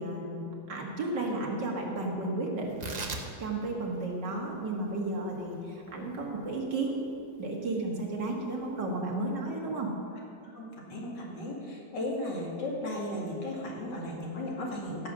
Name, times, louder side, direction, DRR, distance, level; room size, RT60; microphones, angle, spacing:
voice 1, 0.0-2.7 3.4-7.0 7.4-9.9, right 2 dB, 85° right, -1 dB, 2.6 m, -33 dB
Tearing, 2.6-9.4, right 2 dB, 30° right, 0.9 m, -44 dB
voice 2, 10.9-15.1, left 1 dB, 85° left, -2 dB, 3.0 m, -35 dB
16.0 x 7.9 x 6.1 m, 2.7 s
omnidirectional pair, 1.8 m